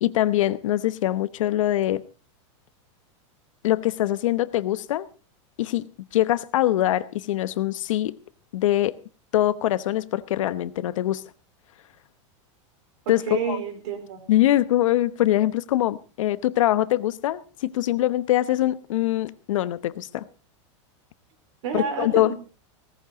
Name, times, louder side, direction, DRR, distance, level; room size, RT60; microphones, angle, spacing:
voice 1, 0.0-2.0 3.6-5.0 5.6-5.9 6.1-8.2 8.5-9.0 9.3-11.3 13.1-13.6 14.3-20.2 21.7-22.3, left 14 dB, 85° left, 16 dB, 0.9 m, -23 dB
voice 2, 13.1-14.3 21.6-22.4, right 6 dB, 70° right, 6 dB, 4.3 m, -30 dB
17.5 x 14.5 x 3.9 m, 0.34 s
supercardioid pair, 160°, 16 cm